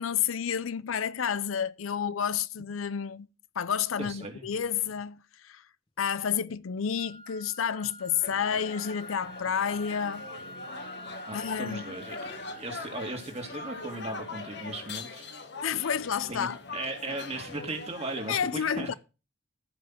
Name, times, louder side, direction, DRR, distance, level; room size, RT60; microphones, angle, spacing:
voice 1, 0.0-3.3 3.6-5.6 6.0-10.3 11.3-11.8 15.6-16.6 18.3-18.9, left 7 dB, 80° left, 0.5 m, -30 dB
voice 2, 4.0-4.4 11.3-15.3 15.6-15.9 16.3-18.9, right 2 dB, 30° right, 2.4 m, -37 dB
sound 1, 7.0-15.0, equal, 25° left, 0.9 m, -48 dB
sound 2, 8.2-18.4, left 3 dB, 55° left, 1.5 m, -42 dB
14.5 x 5.9 x 5.9 m
head